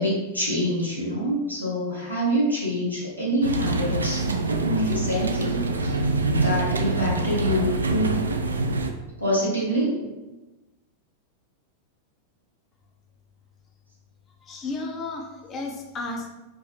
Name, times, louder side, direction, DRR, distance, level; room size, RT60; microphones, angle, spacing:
voice 1, 0.0-4.3 4.8-6.0 6.3-7.7 9.2-9.9, equal, 90° left, -7 dB, 1.1 m, -26 dB
sound 1, 3.4-8.9, right 2 dB, 75° right, 0.3 m, -24 dB
voice 2, 14.4-16.3, left 3 dB, 25° left, 1 dB, 0.7 m, -33 dB
4.1 x 2.7 x 3.2 m, 1.1 s
figure-of-eight pair, 90°, 0 cm